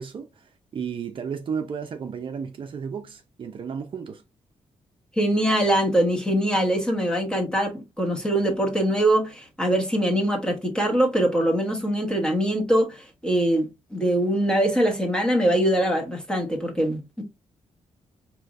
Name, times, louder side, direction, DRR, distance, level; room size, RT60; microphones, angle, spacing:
voice 1, 0.0-4.2, right 6 dB, 45° right, 0.6 m, -33 dB
voice 2, 5.2-13.6 13.9-17.2, right 1 dB, 5° left, 1.1 m, -23 dB
4.9 x 3.0 x 2.4 m
cardioid pair, 130°, 12 cm